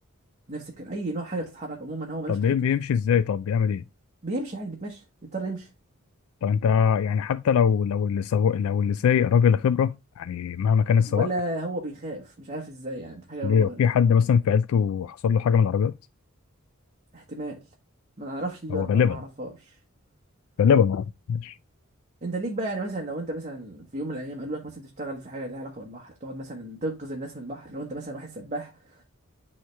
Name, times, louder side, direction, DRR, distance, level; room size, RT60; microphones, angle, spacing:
voice 1, 0.5-2.5 4.2-5.0 5.3-5.7 11.1-13.9 17.1-17.6 18.2-19.8 22.2-29.0, right 2 dB, 35° right, 1.3 m, -34 dB
voice 2, 2.3-3.8 6.4-11.3 13.4-15.9 18.7-19.2 20.6-21.6, left 7 dB, 80° left, 0.3 m, -22 dB
9.2 x 3.2 x 3.3 m
head